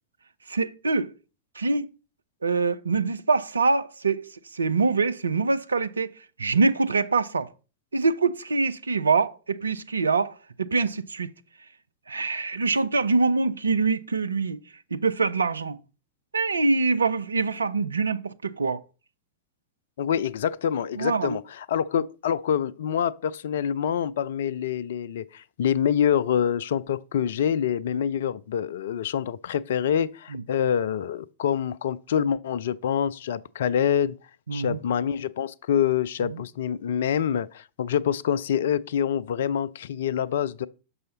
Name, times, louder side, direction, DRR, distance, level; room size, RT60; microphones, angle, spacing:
voice 1, 0.5-1.1 1.6-1.9 2.4-7.5 7.9-11.3 12.1-14.6 14.9-15.8 16.3-18.8 21.0-21.4 30.3-30.4 34.5-34.8 36.2-36.4, right 4 dB, 75° right, 0.4 m, -24 dB
voice 2, 20.0-34.2 34.5-40.7, left 8 dB, 60° left, 0.3 m, -26 dB
6.5 x 5.5 x 4.0 m
figure-of-eight pair, 90°, 0 cm